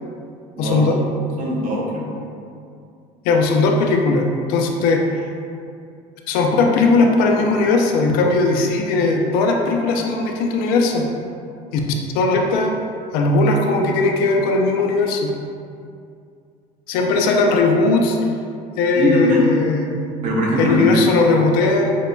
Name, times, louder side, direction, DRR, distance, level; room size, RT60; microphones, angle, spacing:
voice 1, 0.6-1.0 3.2-5.0 6.3-11.1 11.7-11.8 12.1-12.7 13.1-15.3 16.9-18.2 18.8-20.0 20.6-22.0, left 3 dB, 75° left, 2 dB, 0.5 m, -18 dB
voice 2, 1.4-2.1 18.9-19.5 20.2-21.0, left 1 dB, 50° right, -3 dB, 1.0 m, -20 dB
6.3 x 2.2 x 2.6 m, 2.4 s
cardioid pair, 120°, 16 cm